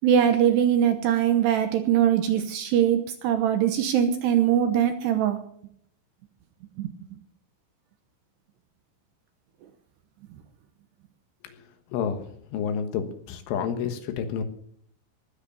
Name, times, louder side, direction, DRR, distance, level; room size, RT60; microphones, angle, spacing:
voice 1, 0.0-5.4 6.8-6.9, right 9 dB, 75° right, 8 dB, 2.8 m, -22 dB
voice 2, 11.9-12.2 12.5-14.4, left 7 dB, 75° left, 8 dB, 3.8 m, -29 dB
19.5 x 8.1 x 7.1 m, 0.65 s
omnidirectional pair, 5.7 m